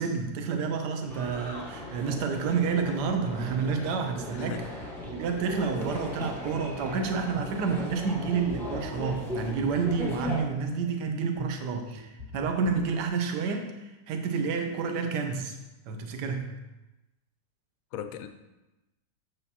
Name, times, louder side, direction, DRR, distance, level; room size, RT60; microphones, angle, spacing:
voice 1, 0.0-4.6 5.0-15.6 15.9-16.5, right 5 dB, 70° right, 5 dB, 1.4 m, -29 dB
sound 1, 1.1-10.4, left 1 dB, ahead, 1.0 m, -38 dB
Lead Melody for a song, 1.8-13.1, left 1 dB, 50° right, 2.2 m, -45 dB
voice 2, 4.3-4.7 17.9-18.3, left 9 dB, 70° left, 8 dB, 0.8 m, -38 dB
8.4 x 7.0 x 2.8 m, 1.0 s
omnidirectional pair, 2.0 m